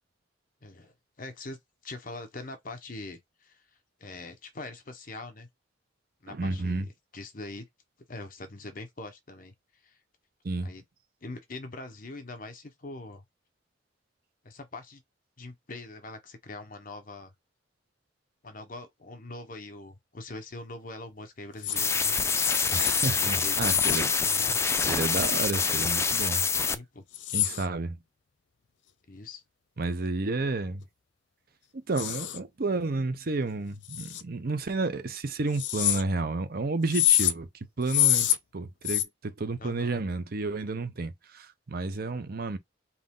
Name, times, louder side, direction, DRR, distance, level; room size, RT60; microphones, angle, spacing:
voice 1, 0.6-1.6 1.8-3.6 4.0-5.5 6.2-7.7 8.1-9.5 9.8-10.0 10.6-10.8 11.2-13.2 14.4-15.0 15.4-17.3 18.4-22.1 23.0-23.9 24.2-24.6 26.6-27.0 29.1-29.4 39.6-40.0, left 2 dB, 50° left, 1.1 m, -43 dB
voice 2, 6.3-6.9 10.4-10.7 22.7-24.1 24.9-26.4 27.3-28.0 29.8-30.8 31.7-37.5 37.8-42.6, right 3 dB, 55° right, 0.7 m, -31 dB
sound 1, 21.6-21.8 22.4-22.9 23.6-24.0 25.0-25.2 27.1-27.7 32.0-32.4 33.8-34.2 35.5-36.0 36.9-37.3 37.8-38.4 38.9-39.0, left 13 dB, 75° left, 0.6 m, -26 dB
sound 2, 21.8-26.8, left 5 dB, 15° left, 0.4 m, -26 dB
3.8 x 2.9 x 3.8 m
head